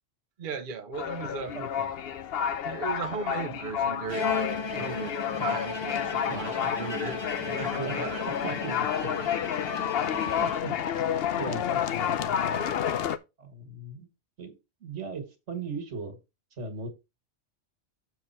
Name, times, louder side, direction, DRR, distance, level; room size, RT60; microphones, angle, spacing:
voice 1, 0.4-1.6 2.6-4.4 4.7-9.2, right 6 dB, 50° right, 0.9 m, -37 dB
sound 1, 0.9-13.2, left 9 dB, 65° left, 0.8 m, -30 dB
voice 2, 1.6-1.9 4.7-4.8 6.3-6.7 7.8-7.9 8.4-8.9 10.1-11.0 11.4-12.7 13.4-14.1 14.4-14.6 14.8-16.2 16.6-16.9, right 3 dB, 85° right, 2.0 m, -38 dB
Bowed string instrument, 4.1-11.1, left 4 dB, 30° left, 0.6 m, -35 dB
7.0 x 5.9 x 4.3 m
omnidirectional pair, 1.2 m